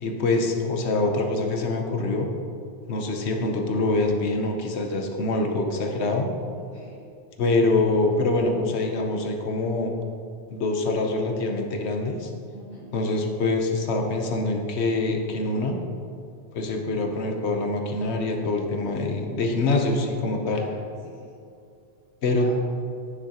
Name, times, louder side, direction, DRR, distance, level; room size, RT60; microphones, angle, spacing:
voice 1, 0.0-2.3 2.9-6.3 7.4-9.9 10.5-12.3 12.9-15.8 16.5-20.6 22.2-22.5, left 2 dB, 80° left, 3 dB, 1.1 m, -25 dB
voice 2, 6.6-7.0 12.5-12.9 20.5-21.3 22.2-22.5, right 1 dB, 25° right, -9 dB, 1.4 m, -44 dB
9.8 x 6.2 x 2.9 m, 2.5 s
omnidirectional pair, 1.1 m